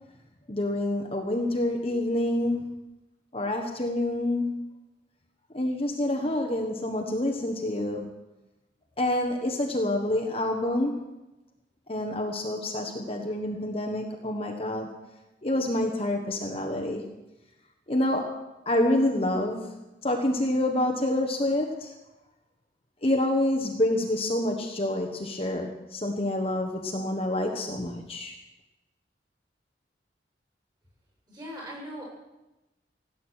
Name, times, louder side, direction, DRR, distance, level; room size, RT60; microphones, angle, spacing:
voice 1, 0.5-2.8 3.3-4.7 5.5-8.1 9.0-11.0 11.9-14.9 15.4-17.0 17.9-18.3 18.6-19.7 20.0-21.9 23.0-28.3, left 1 dB, 30° left, 3 dB, 1.4 m, -27 dB
voice 2, 31.3-32.0, equal, 25° right, -1 dB, 7.2 m, -39 dB
17.0 x 8.4 x 9.0 m, 1.0 s
head